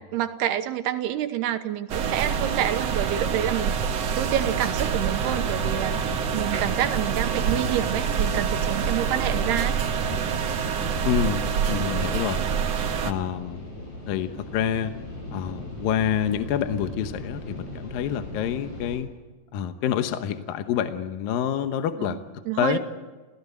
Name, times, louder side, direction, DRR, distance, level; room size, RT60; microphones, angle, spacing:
voice 1, 0.1-3.7 4.2-9.8 22.1-22.2 22.5-22.8, right 11 dB, 80° right, 9 dB, 3.0 m, -28 dB
sound 1, 1.9-13.1, right 7 dB, 60° right, 1.7 m, -26 dB
sound 2, 5.5-19.0, left 1 dB, 40° left, 8.4 m, -38 dB
voice 2, 11.1-12.4 13.0-13.6 14.1-14.9 15.3-19.1 19.5-22.2 22.6-22.8, left 9 dB, 70° left, 9 dB, 2.5 m, -27 dB
29.5 x 17.0 x 8.1 m, 1.3 s
omnidirectional pair, 4.8 m